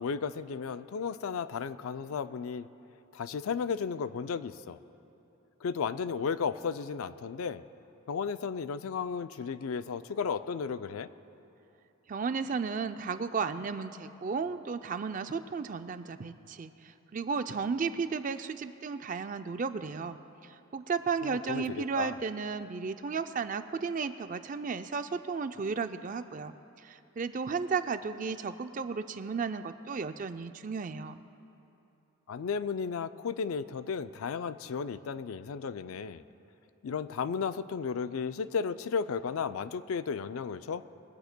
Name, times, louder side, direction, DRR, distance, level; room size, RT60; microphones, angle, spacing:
voice 1, 0.0-2.7 3.1-4.8 5.6-7.6 8.1-11.1 21.2-22.2 32.3-36.2 36.8-40.8, left 6 dB, 75° left, 13 dB, 0.4 m, -34 dB
voice 2, 12.1-20.2 20.4-31.2, right 5 dB, 35° right, 10 dB, 0.4 m, -34 dB
21.5 x 16.0 x 2.2 m, 2.9 s
head